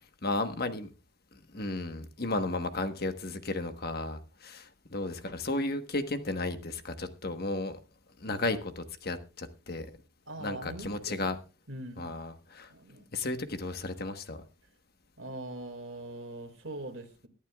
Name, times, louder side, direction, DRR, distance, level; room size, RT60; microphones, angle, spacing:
voice 1, 0.2-0.9 1.3-7.8 8.2-9.9 10.4-11.4 12.0-12.7 13.1-14.4, left 2 dB, 45° left, 8 dB, 1.3 m, -34 dB
voice 2, 10.3-11.3 11.7-12.2 12.7-13.1 15.2-17.3, right 1 dB, 60° right, 5 dB, 2.2 m, -42 dB
23.5 x 11.0 x 2.4 m, 0.32 s
head